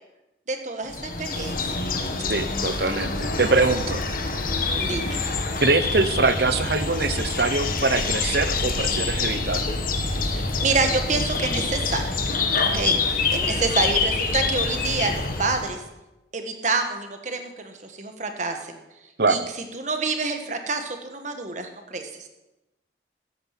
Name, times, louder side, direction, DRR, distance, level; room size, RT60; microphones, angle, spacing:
voice 1, 0.5-1.8 4.8-5.2 10.3-12.2 12.7-15.8 16.3-18.8 19.3-19.4 19.7-22.3, right 3 dB, 40° right, 5 dB, 1.5 m, -27 dB
sound 1, 0.9-15.8, left 4 dB, 45° left, 1.4 m, -26 dB
voice 2, 2.3-4.0 5.6-9.7 12.7-13.0 19.2-19.5, right 3 dB, 55° right, 12 dB, 0.8 m, -23 dB
13.5 x 9.3 x 5.9 m, 0.97 s
head